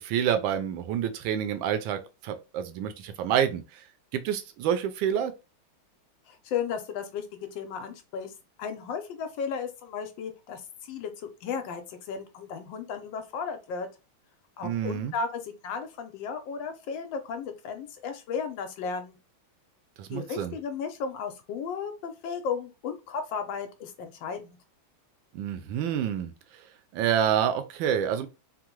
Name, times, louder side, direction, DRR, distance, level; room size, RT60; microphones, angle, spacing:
voice 1, 0.0-3.8 4.1-5.3 14.6-15.1 20.0-20.5 25.3-26.3 26.9-28.3, right 9 dB, 75° right, 1.2 m, -28 dB
voice 2, 6.3-8.3 8.6-13.9 14.6-19.2 20.1-24.6, left 6 dB, 75° left, 1.2 m, -35 dB
3.7 x 2.0 x 2.9 m
omnidirectional pair, 2.3 m